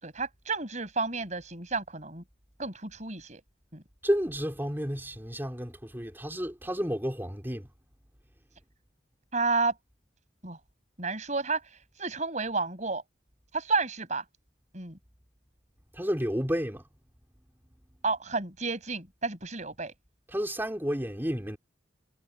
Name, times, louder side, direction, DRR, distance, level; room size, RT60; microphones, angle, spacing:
voice 1, 0.0-2.2 2.6-3.4 3.7-3.8 9.3-9.7 10.4-10.6 11.0-11.6 12.0-13.0 13.5-14.2 14.7-14.9 18.0-19.9, right 3 dB, 35° right, 5.8 m, -31 dB
voice 2, 4.0-7.7 15.9-16.8 20.3-21.6, equal, 10° right, 3.6 m, -31 dB
head